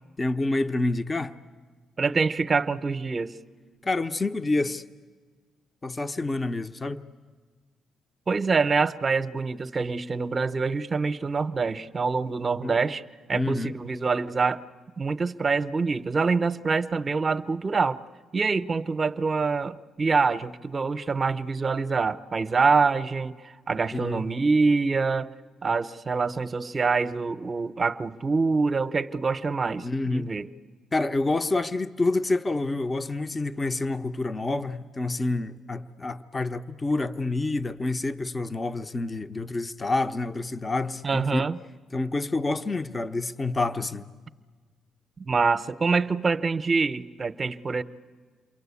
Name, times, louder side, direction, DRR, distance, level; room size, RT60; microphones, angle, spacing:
voice 1, 0.2-1.3 3.8-4.8 5.8-7.0 12.6-12.8 13.3-13.7 23.9-24.2 29.8-30.3 30.9-41.5 41.9-44.1, left 2 dB, 25° left, 0.8 m, -28 dB
voice 2, 2.0-3.4 8.3-13.0 13.3-14.6 15.0-18.0 18.3-25.3 25.6-30.5 41.0-41.6 45.2-47.8, right 4 dB, 35° right, 0.8 m, -25 dB
28.5 x 23.0 x 8.4 m
cardioid pair, 90°, 0 cm